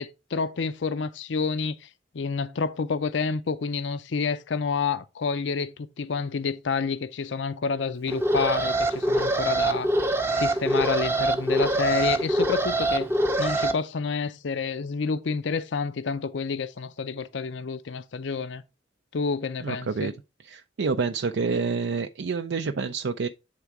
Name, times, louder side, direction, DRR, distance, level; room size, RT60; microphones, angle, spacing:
voice 1, 0.0-1.9 2.1-13.1 13.4-18.6 19.1-20.1, left 5 dB, 70° left, 0.5 m, -29 dB
Alarm, 8.1-13.7, right 1 dB, 15° right, 0.6 m, -24 dB
voice 2, 19.6-20.1 20.4-23.3, right 4 dB, 70° right, 0.4 m, -28 dB
8.2 x 3.6 x 4.6 m
head